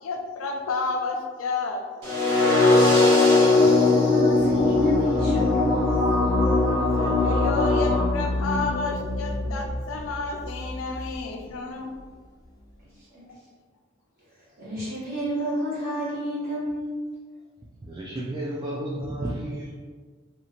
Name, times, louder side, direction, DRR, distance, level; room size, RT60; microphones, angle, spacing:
voice 1, 0.0-1.8 7.0-11.9, left 3 dB, 90° left, 3 dB, 0.4 m, -30 dB
sound 1, 2.0-8.0, left 3 dB, 80° right, 1.2 m, -20 dB
voice 2, 3.5-5.9 14.6-16.9, equal, 50° right, -9 dB, 1.4 m, -29 dB
sound 2, 4.3-11.5, left 2 dB, 20° left, 0.7 m, -28 dB
voice 3, 17.8-19.7, right 1 dB, 20° right, -6 dB, 0.3 m, -32 dB
2.8 x 2.4 x 2.9 m, 1.5 s
head